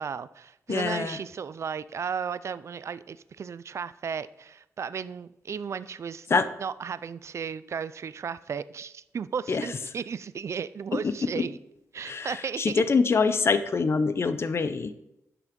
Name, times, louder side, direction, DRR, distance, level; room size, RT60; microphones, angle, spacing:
voice 1, 0.0-6.3 6.6-11.6 11.9-12.8, right 6 dB, 55° right, 16 dB, 0.4 m, -35 dB
voice 2, 0.7-1.2 6.3-6.5 9.5-9.6 10.9-11.5 12.0-14.9, left 4 dB, 45° left, 12 dB, 0.7 m, -25 dB
11.0 x 6.0 x 5.2 m, 0.84 s
wide cardioid pair, 100°, 6 cm